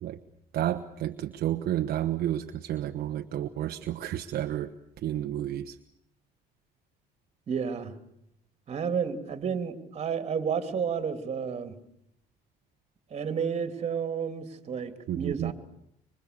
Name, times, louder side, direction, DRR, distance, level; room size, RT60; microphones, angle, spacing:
voice 1, 0.5-4.7 5.0-5.8 15.1-15.5, right 12 dB, 60° right, 7 dB, 1.2 m, -31 dB
voice 2, 7.5-7.9 8.7-11.8 13.1-15.5, right 6 dB, 40° right, 7 dB, 3.0 m, -31 dB
26.0 x 24.5 x 6.9 m, 0.76 s
cardioid pair, 115°, 17 cm